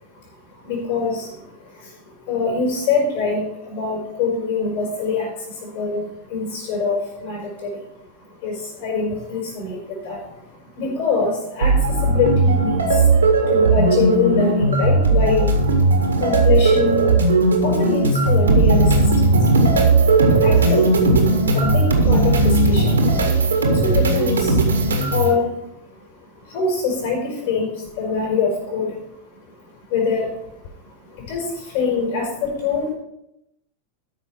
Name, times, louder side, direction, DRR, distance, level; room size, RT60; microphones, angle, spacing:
voice 1, 0.1-7.8 8.4-10.4 10.8-19.6 19.9-25.6 26.0-29.1 29.3-30.5 30.8-32.9, left 4 dB, 50° left, -1 dB, 4.2 m, -25 dB
sound 1, 11.6-25.3, right 3 dB, 75° right, 1.7 m, -17 dB
13.5 x 5.7 x 4.7 m, 0.84 s
figure-of-eight pair, 90°, 0 cm